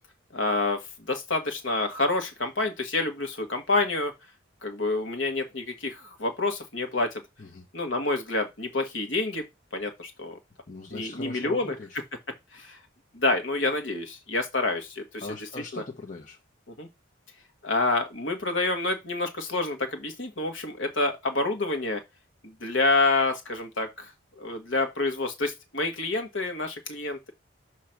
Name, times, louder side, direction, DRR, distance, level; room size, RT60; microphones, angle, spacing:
voice 1, 0.3-4.1 4.6-7.2 7.7-9.4 9.7-10.4 10.9-11.7 12.5-12.8 13.1-15.2 15.7-15.8 16.8-16.9 17.6-22.0 22.4-24.1 24.4-27.3, left 2 dB, 65° left, 1.5 m, -28 dB
voice 2, 10.7-12.0 15.2-16.4, left 3 dB, 40° left, 1.1 m, -40 dB
6.6 x 3.1 x 5.9 m
head